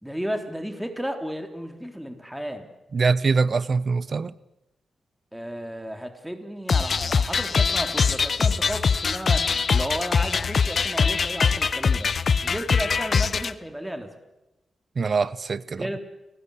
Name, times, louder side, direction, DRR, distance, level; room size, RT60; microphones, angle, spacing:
voice 1, 0.0-2.7 5.3-12.1 12.4-14.2 15.8-16.0, equal, 5° right, 3.7 m, -33 dB
voice 2, 2.9-4.3 15.0-15.9, right 4 dB, 50° right, 1.0 m, -23 dB
sound 1, 6.7-13.5, left 5 dB, 55° left, 1.0 m, -23 dB
29.0 x 20.0 x 8.4 m
cardioid pair, 75°, 0 cm